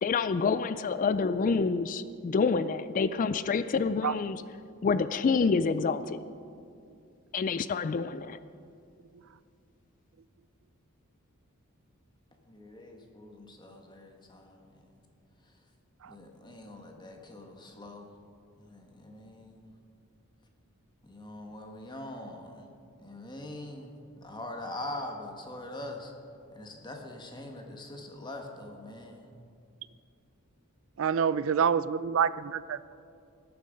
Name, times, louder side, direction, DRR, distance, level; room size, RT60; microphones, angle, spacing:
voice 1, 0.0-4.4 4.8-6.2 7.3-8.4, left 5 dB, 35° left, 0.3 m, -27 dB
voice 2, 12.5-14.8 16.1-18.1 18.6-19.6 21.0-22.7 23.0-23.9 24.2-26.1 26.5-29.3, left 1 dB, 20° left, 1.3 m, -43 dB
voice 3, 31.0-32.9, right 7 dB, 60° right, 0.4 m, -27 dB
17.5 x 10.0 x 5.2 m
head